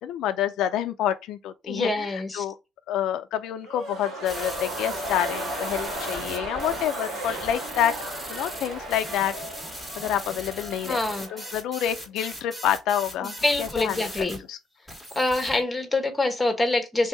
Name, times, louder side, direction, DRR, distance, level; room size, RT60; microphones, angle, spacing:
voice 1, 0.0-2.5 2.9-7.9 8.3-9.3 10.0-11.0 11.3-14.6, left 10 dB, 75° left, 0.4 m, -28 dB
voice 2, 1.6-2.4 10.8-11.3 13.2-14.4 15.1-17.1, left 2 dB, 10° left, 1.0 m, -25 dB
sound 1, 3.6-11.7 12.0-12.1, right 1 dB, 70° right, 2.1 m, -35 dB
sound 2, 4.2-14.4 14.9-15.6, equal, 10° right, 1.4 m, -39 dB
3.4 x 2.7 x 4.4 m
cardioid pair, 140°, 0 cm